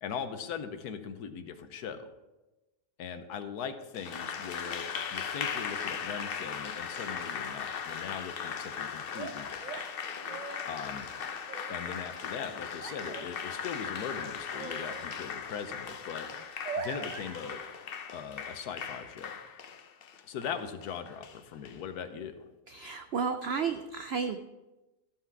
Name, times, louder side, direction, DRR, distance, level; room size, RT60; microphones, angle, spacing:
voice 1, 0.0-2.1 3.0-9.8 10.7-11.1 11.7-16.3 16.8-17.6 18.1-19.3 20.2-22.5, left 7 dB, 80° left, 9 dB, 1.3 m, -40 dB
Applause, 3.9-21.8, left 7 dB, 55° left, 0.6 m, -38 dB
sound 1, 9.2-11.0 11.5-11.8 12.8-13.7 14.0-15.1 15.5-16.0 16.3-17.6, right 5 dB, 45° right, 0.6 m, -42 dB
voice 2, 22.7-24.4, right 5 dB, 85° right, 8 dB, 0.5 m, -32 dB
14.0 x 5.7 x 4.7 m, 1.1 s
omnidirectional pair, 1.7 m